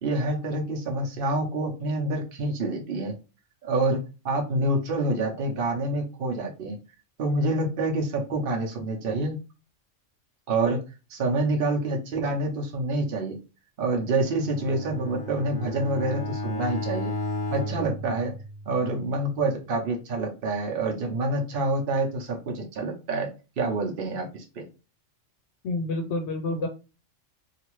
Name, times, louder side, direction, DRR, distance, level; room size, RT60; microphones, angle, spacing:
voice 1, 0.0-3.1 3.6-4.0 4.2-6.8 7.2-9.4 10.5-10.8 11.1-13.4 13.8-17.1 17.5-18.3 18.7-23.3 23.6-24.7, right 2 dB, 55° right, 0 dB, 0.8 m, -27 dB
Bowed string instrument, 14.3-18.9, left 1 dB, 20° left, 1.0 m, -33 dB
voice 2, 25.6-26.7, left 2 dB, 70° left, 5 dB, 0.8 m, -28 dB
2.8 x 2.4 x 3.0 m, 0.32 s
omnidirectional pair, 1.3 m